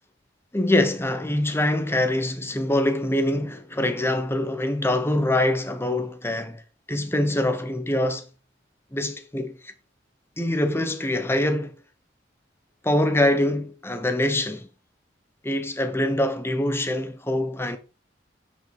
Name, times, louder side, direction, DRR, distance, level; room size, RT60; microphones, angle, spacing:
voice 1, 0.5-6.6 6.9-8.3 8.9-9.7 10.4-11.7 12.8-14.7 15.4-17.8, left 1 dB, 10° left, 1.0 m, -24 dB
10.0 x 5.4 x 4.9 m
head